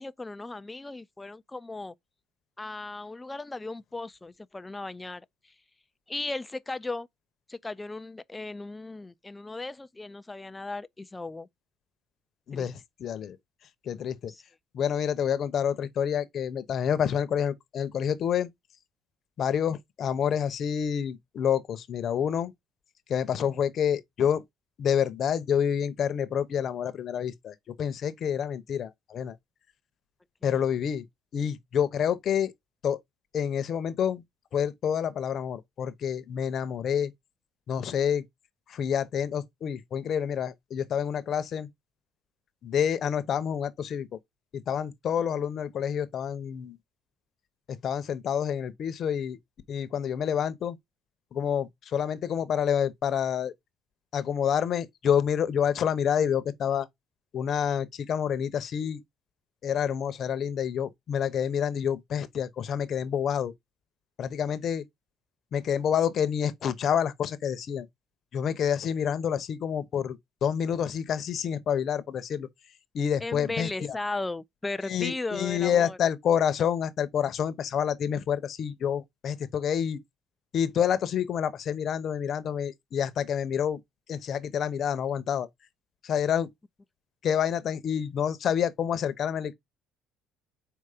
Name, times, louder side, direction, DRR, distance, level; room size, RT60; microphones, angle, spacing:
voice 1, 0.0-1.9 2.6-5.3 6.1-7.1 7.5-11.5 12.5-12.7 14.3-14.4 73.2-76.0, left 2 dB, 10° left, 0.3 m, -36 dB
voice 2, 12.5-13.4 13.9-14.3 14.7-18.5 19.4-22.5 23.1-24.4 24.8-29.4 30.4-31.0 31.3-32.5 32.8-33.0 33.3-34.2 34.5-37.1 37.7-38.2 38.7-41.7 42.6-44.2 44.5-46.8 47.8-49.4 49.7-50.8 51.3-53.5 54.1-56.9 57.3-59.0 59.6-63.5 64.2-64.8 65.5-67.9 68.3-72.5 72.9-73.7 74.9-80.0 80.5-83.8 84.1-85.5 86.0-86.5 87.2-89.5, left 8 dB, 35° left, 0.8 m, -28 dB
5.5 x 4.5 x 4.9 m
cardioid pair, 175°, 0 cm